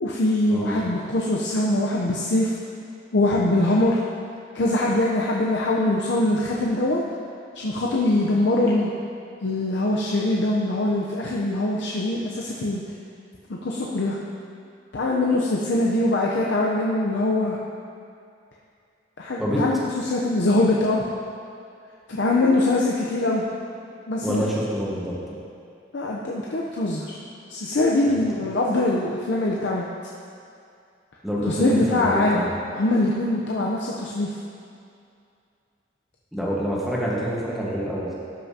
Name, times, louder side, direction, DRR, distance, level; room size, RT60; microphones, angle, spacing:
voice 1, 0.0-2.5 3.1-4.0 4.5-7.0 7.6-8.9 9.4-12.8 13.5-14.2 14.9-17.6 19.2-21.0 22.1-23.4 24.1-24.4 25.9-27.2 27.5-29.8 31.5-32.4 32.7-34.3, left 2 dB, 70° left, -3 dB, 0.6 m, -22 dB
voice 2, 24.2-25.2 31.2-32.5 36.3-38.1, equal, ahead, -6 dB, 1.2 m, -26 dB
12.5 x 5.8 x 2.7 m, 2.5 s
head